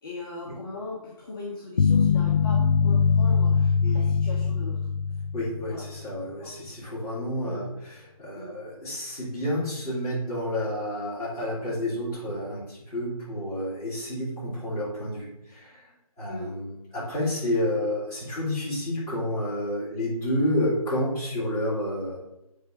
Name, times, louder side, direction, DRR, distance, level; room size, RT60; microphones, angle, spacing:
voice 1, 0.0-4.8 5.6-5.8 6.4-6.5 7.4-7.6 8.3-8.5 16.3-16.5, left 2 dB, 35° left, -3 dB, 1.1 m, -39 dB
sound 1, 1.8-6.0, left 6 dB, 75° left, 0.5 m, -22 dB
voice 2, 5.3-22.2, left 1 dB, 15° left, -10 dB, 2.9 m, -30 dB
7.8 x 3.7 x 5.1 m, 0.87 s
figure-of-eight pair, 150°, 19 cm